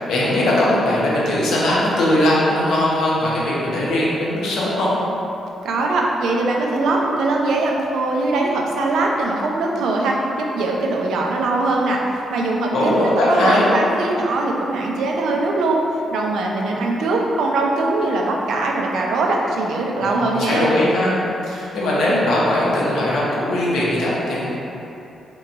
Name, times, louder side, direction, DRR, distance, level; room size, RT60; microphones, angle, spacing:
voice 1, 0.1-4.9 12.7-13.7 20.0-21.1 21.5-24.5, left 1 dB, 85° left, -6 dB, 0.7 m, -19 dB
voice 2, 5.6-15.8 16.1-20.7, right 2 dB, 85° right, -1 dB, 0.4 m, -21 dB
2.9 x 2.2 x 3.8 m, 2.9 s
wide cardioid pair, 160°, 0 cm